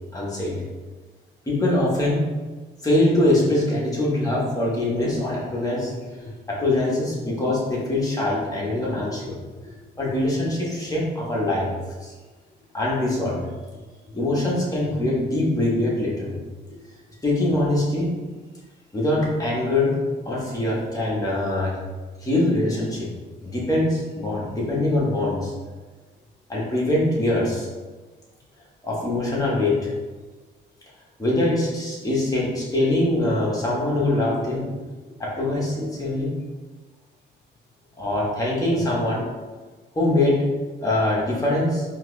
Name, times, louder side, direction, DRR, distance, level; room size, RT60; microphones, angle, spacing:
voice 1, 0.1-0.6 1.5-2.3 2.8-5.9 6.2-9.4 9.6-11.7 12.0-12.1 12.7-13.4 14.1-16.3 17.2-18.2 18.9-20.0 20.2-21.8 22.2-23.1 23.4-25.5 26.5-27.7 28.8-29.9 31.2-34.8 35.2-36.3 38.0-39.2 39.9-40.5 40.8-41.8, left 1 dB, 15° left, -5 dB, 1.1 m, -23 dB
4.4 x 2.5 x 2.2 m, 1.3 s
cardioid pair, 90°, 20 cm